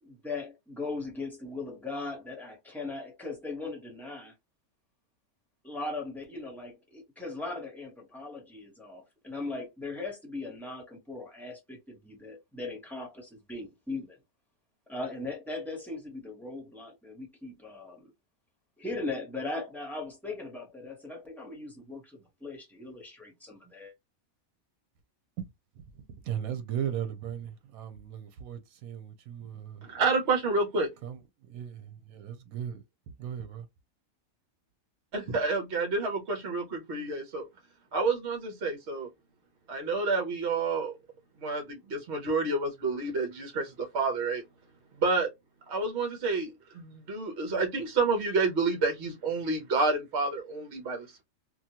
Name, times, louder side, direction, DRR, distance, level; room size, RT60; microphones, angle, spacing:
voice 1, 0.0-4.3 5.6-14.2 14.9-18.1 18.8-23.9, left 3 dB, ahead, 0.9 m, -39 dB
voice 2, 26.3-29.8 31.0-31.1 31.5-31.8 32.1-32.8 33.2-33.6, right 9 dB, 80° right, 1.1 m, -36 dB
voice 3, 29.8-30.9 35.1-37.5 37.9-39.1 39.7-41.0 41.4-44.4 45.0-45.3 45.7-51.2, right 3 dB, 55° right, 1.1 m, -29 dB
2.9 x 2.4 x 2.8 m
omnidirectional pair, 1.5 m